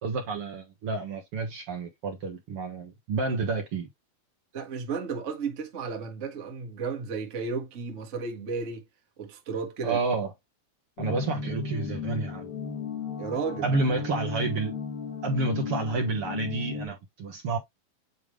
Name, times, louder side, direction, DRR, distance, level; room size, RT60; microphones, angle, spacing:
voice 1, 0.0-3.9 9.8-10.3 11.0-12.5 13.6-14.7 15.2-17.6, right 3 dB, 65° right, 1.4 m, -29 dB
voice 2, 4.5-8.8 9.2-10.0 13.2-13.7, right 5 dB, 80° right, 0.6 m, -33 dB
sound 1, 11.0-16.9, left 5 dB, 75° left, 3.8 m, -35 dB
9.3 x 3.3 x 3.3 m
omnidirectional pair, 4.3 m